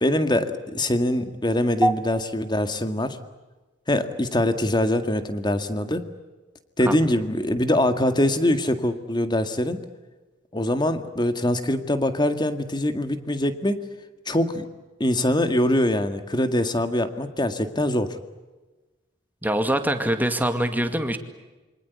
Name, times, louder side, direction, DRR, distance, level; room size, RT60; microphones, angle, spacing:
voice 1, 0.0-3.2 3.9-6.0 6.8-9.8 10.5-13.8 14.3-14.7 15.0-18.2, left 1 dB, 25° left, 9 dB, 2.0 m, -23 dB
voice 2, 19.4-21.2, right 1 dB, 10° right, 7 dB, 2.2 m, -23 dB
27.5 x 24.5 x 8.4 m, 1.2 s
head